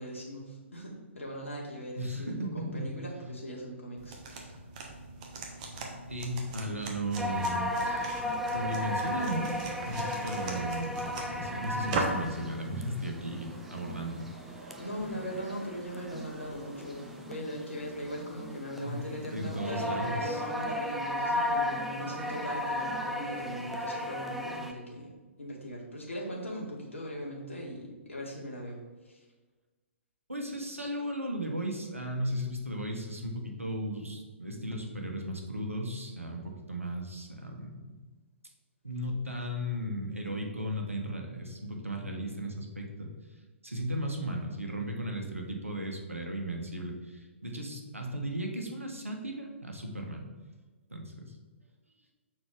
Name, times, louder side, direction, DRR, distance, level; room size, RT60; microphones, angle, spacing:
voice 1, 0.0-4.5 6.7-6.9 14.8-25.1 25.4-28.8 29.1-29.2, equal, 70° left, -3 dB, 2.0 m, -39 dB
voice 2, 2.0-2.9 3.2-3.3 6.1-8.2 8.5-9.5 9.9-11.0 11.3-14.3 18.8-19.0 19.3-20.4 30.3-37.9 38.8-43.1 43.6-50.3 50.9-51.3, equal, 85° right, 2 dB, 1.3 m, -36 dB
sound 1, 4.0-12.3, right 3 dB, 35° right, 1.1 m, -39 dB
sound 2, 7.2-24.7, left 1 dB, ahead, 0.4 m, -35 dB
sound 3, 11.7-17.4, right 2 dB, 65° right, 1.2 m, -51 dB
6.4 x 4.3 x 5.0 m, 1.3 s
figure-of-eight pair, 125°, 7 cm